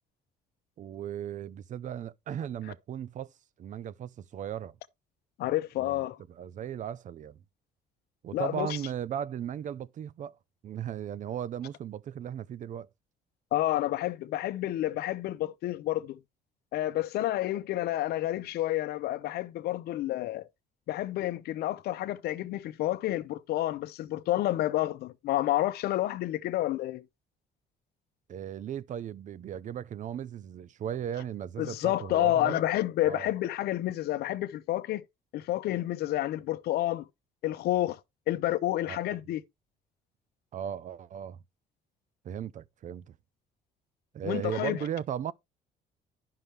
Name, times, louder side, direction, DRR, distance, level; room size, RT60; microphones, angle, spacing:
voice 1, 0.8-3.3 3.6-4.8 5.8-6.0 6.4-7.4 8.2-10.4 10.6-12.9 28.3-32.6 33.1-33.3 38.9-39.2 40.5-41.4 42.2-43.2 44.1-45.3, right 9 dB, 45° right, 0.6 m, -36 dB
voice 2, 5.4-6.2 8.3-8.8 13.5-16.2 16.7-20.5 20.9-27.0 31.6-35.0 35.3-37.1 37.4-38.0 38.3-39.4 44.2-44.8, left 14 dB, 70° left, 0.7 m, -29 dB
11.0 x 5.7 x 3.3 m
cardioid pair, 110°, 17 cm